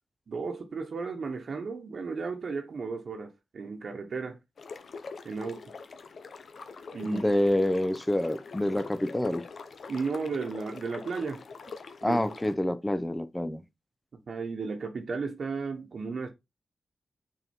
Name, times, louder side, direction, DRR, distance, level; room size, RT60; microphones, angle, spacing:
voice 1, 0.3-4.4 5.2-5.6 6.9-7.2 9.9-11.4 12.0-12.2 14.3-16.3, right 4 dB, 65° right, 1.2 m, -34 dB
sound 1, 4.6-12.5, left 4 dB, 70° left, 0.9 m, -44 dB
voice 2, 7.1-9.4 12.0-13.6, left 1 dB, 10° left, 0.9 m, -27 dB
6.3 x 4.5 x 4.4 m
cardioid pair, 65°, 0 cm